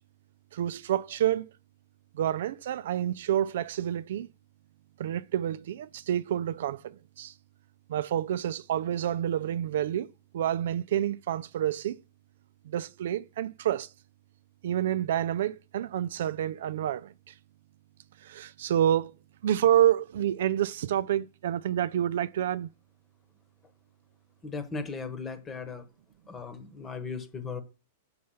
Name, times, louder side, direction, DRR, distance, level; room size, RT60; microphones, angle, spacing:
voice 1, 0.5-1.5 2.1-4.3 5.0-7.3 7.9-12.0 12.6-13.9 14.6-17.3 18.2-19.1 19.4-22.7, right 11 dB, 70° right, 0.4 m, -28 dB
voice 2, 24.4-25.9 26.3-27.6, left 4 dB, 15° left, 1.1 m, -37 dB
5.6 x 5.5 x 6.4 m
hypercardioid pair, 145°, 0 cm